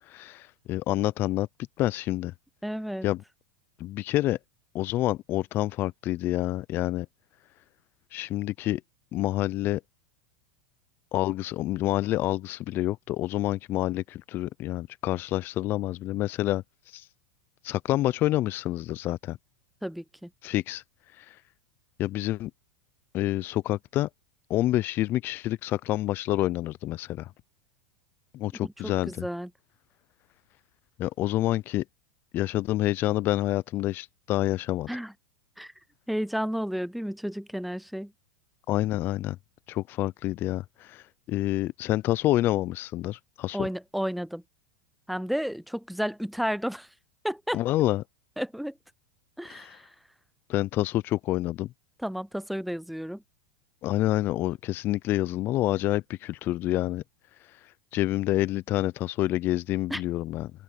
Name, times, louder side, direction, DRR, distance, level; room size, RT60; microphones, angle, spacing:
voice 1, 0.1-1.5 1.8-2.3 3.0-3.2 3.8-4.4 4.7-7.1 8.1-8.8 9.1-9.8 11.1-16.6 16.9-17.0 17.6-19.4 20.4-20.8 21.2-21.4 22.0-22.5 23.1-24.1 24.5-27.3 28.3-29.1 31.0-31.8 32.3-34.9 38.7-39.4 39.7-43.7 47.5-48.0 49.5-49.8 50.5-51.7 53.8-57.0 57.9-60.5, left 15 dB, 40° left, 0.6 m, -28 dB
voice 2, 2.6-3.1 19.8-20.3 28.6-29.5 34.9-35.1 35.6-35.7 36.1-38.1 43.5-44.4 45.1-46.9 47.2-47.6 48.4-48.7 49.4-49.9 52.0-53.2 59.9-60.0, equal, ahead, 0.5 m, -32 dB
open air
hypercardioid pair, 110°, 5 cm